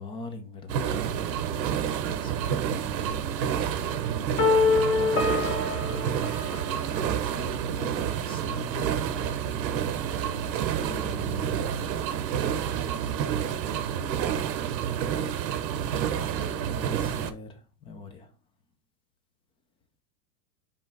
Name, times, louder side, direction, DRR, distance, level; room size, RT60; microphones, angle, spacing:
voice 1, 0.0-1.3 1.7-3.3 4.6-5.3 6.8-9.3 10.8-12.2 16.1-18.3, left 4 dB, 10° left, 0.4 m, -42 dB
sound 1, 0.7-17.3, right 8 dB, 85° right, 0.9 m, -29 dB
sound 2, 4.4-7.3, left 4 dB, 35° left, 1.2 m, -25 dB
5.2 x 3.5 x 5.2 m
supercardioid pair, 135°, 50 cm